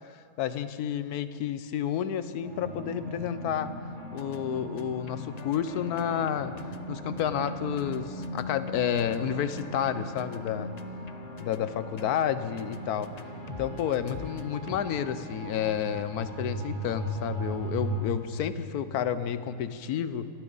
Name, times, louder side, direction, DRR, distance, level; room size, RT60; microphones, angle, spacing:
voice 1, 0.1-3.7 4.1-6.6 6.9-10.8 11.4-13.1 13.6-20.3, left 9 dB, 90° left, 12 dB, 1.2 m, -30 dB
sound 1, 2.4-18.0, right 1 dB, 50° right, 5.6 m, -39 dB
sound 2, 3.9-14.8, left 7 dB, 55° left, 0.4 m, -46 dB
26.5 x 13.0 x 4.0 m, 2.5 s
omnidirectional pair, 1.6 m